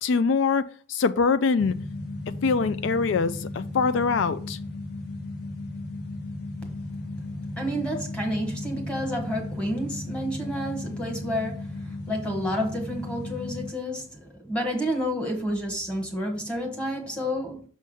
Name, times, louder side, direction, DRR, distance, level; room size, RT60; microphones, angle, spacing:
voice 1, 0.0-1.8 2.4-4.6, left 5 dB, 75° left, 0.4 m, -23 dB
sound 1, 1.6-13.7, left 2 dB, 55° left, 1.1 m, -35 dB
voice 2, 7.5-17.6, equal, 5° left, 1.3 m, -30 dB
6.5 x 3.5 x 5.3 m
head